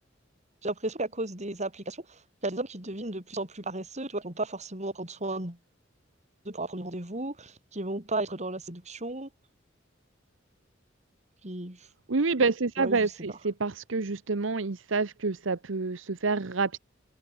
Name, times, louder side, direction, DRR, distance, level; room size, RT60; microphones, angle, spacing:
voice 1, 0.6-5.6 6.4-9.3 11.4-11.9 12.8-13.1, right 2 dB, 35° right, 6.0 m, -34 dB
voice 2, 12.1-16.8, right 4 dB, 80° right, 1.0 m, -28 dB
head